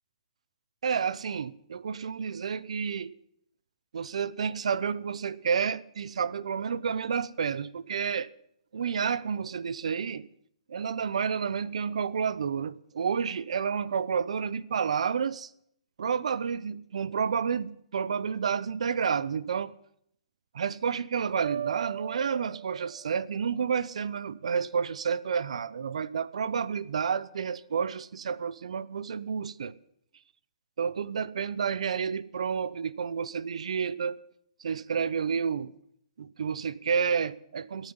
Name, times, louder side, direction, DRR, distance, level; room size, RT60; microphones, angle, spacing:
voice 1, 0.8-3.2 3.9-8.3 8.7-10.3 10.7-15.5 16.0-19.7 20.5-29.7 30.8-34.2 34.6-35.7 36.2-37.9, right 6 dB, 70° right, 0.8 m, -30 dB
sound 1, 21.4-23.3, right 11 dB, 50° right, 1.2 m, -38 dB
14.5 x 9.3 x 9.5 m
hypercardioid pair, 160°, 3 cm